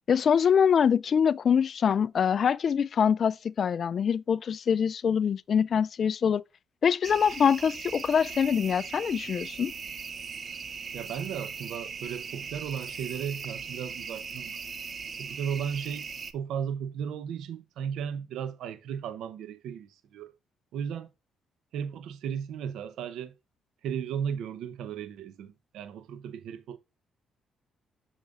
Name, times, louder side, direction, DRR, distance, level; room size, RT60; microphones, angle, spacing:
voice 1, 0.1-6.4 6.8-9.7, left 7 dB, 50° left, 0.3 m, -24 dB
sound 1, 7.0-16.3, right 5 dB, 45° right, 0.6 m, -39 dB
voice 2, 10.9-14.6 15.2-20.3 20.7-21.1 21.7-23.3 23.8-26.8, right 8 dB, 80° right, 0.7 m, -35 dB
7.2 x 6.6 x 2.5 m
cardioid pair, 90°, 0 cm